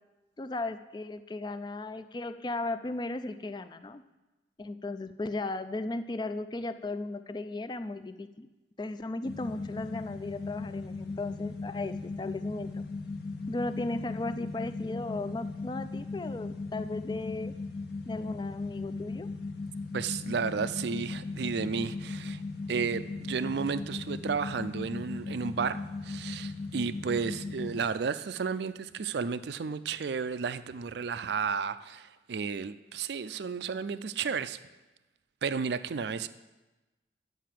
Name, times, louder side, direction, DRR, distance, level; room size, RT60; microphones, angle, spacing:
voice 1, 0.4-4.0 4.6-8.5 8.8-12.8 13.5-17.5 18.1-19.3, left 2 dB, 25° left, 11 dB, 0.3 m, -36 dB
sound 1, 9.2-27.8, left 3 dB, 60° left, 1.1 m, -38 dB
voice 2, 19.9-22.4 22.7-34.6 35.4-36.3, right 5 dB, 60° right, 14 dB, 0.4 m, -33 dB
10.0 x 5.6 x 7.5 m, 1.1 s
head